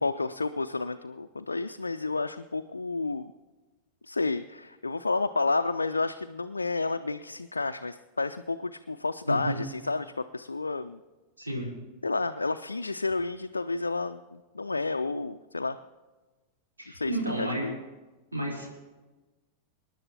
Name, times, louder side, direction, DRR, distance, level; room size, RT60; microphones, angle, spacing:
voice 1, 0.0-3.3 4.0-11.0 12.0-15.8 16.9-17.1 17.4-17.8, left 3 dB, 80° left, 7 dB, 0.3 m, -30 dB
voice 2, 9.3-9.6 11.4-11.7 16.8-17.6 18.3-18.7, right 1 dB, 80° right, -4 dB, 3.8 m, -31 dB
26.0 x 10.5 x 2.9 m, 1.2 s
figure-of-eight pair, 90°, 0 cm